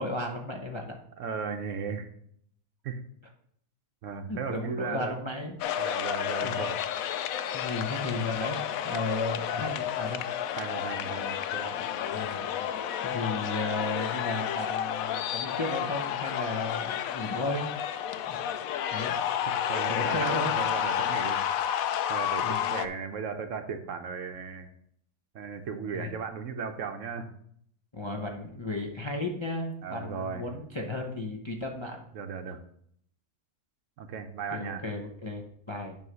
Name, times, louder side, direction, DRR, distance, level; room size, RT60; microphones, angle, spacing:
voice 1, 0.0-1.0 4.3-5.6 6.4-6.6 7.5-10.2 12.0-12.5 12.7-17.7 18.3-18.4 18.9-19.2 19.9-20.6 22.4-22.7 25.9-26.1 27.9-32.0 34.5-36.0, left 2 dB, 25° left, 1 dB, 0.6 m, -34 dB
voice 2, 1.2-2.1 2.8-3.0 4.0-5.2 5.8-6.8 7.5-7.7 10.6-11.7 19.1-19.2 19.5-21.4 22.1-24.7 25.3-27.3 29.8-30.5 32.1-32.6 34.0-34.8, right 5 dB, 65° right, 7 dB, 1.0 m, -36 dB
sound 1, 5.6-22.9, left 10 dB, 75° left, 1.0 m, -31 dB
9.5 x 3.2 x 6.1 m, 0.68 s
omnidirectional pair, 1.5 m